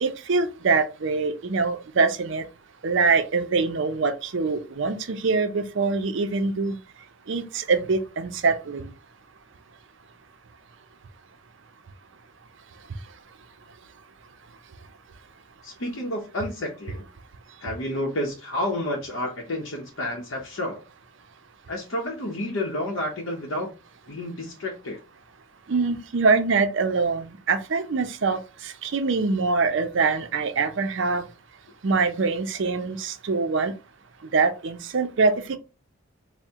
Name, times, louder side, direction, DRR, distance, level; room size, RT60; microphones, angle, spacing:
voice 1, 0.0-2.4 2.8-6.8 7.3-8.9 25.7-31.2 31.8-33.7 34.3-35.6, right 4 dB, 60° right, 0.5 m, -24 dB
voice 2, 15.6-17.0 17.6-20.8 21.7-23.7 24.1-25.0, left 1 dB, 65° left, 0.7 m, -30 dB
4.3 x 2.1 x 3.5 m
head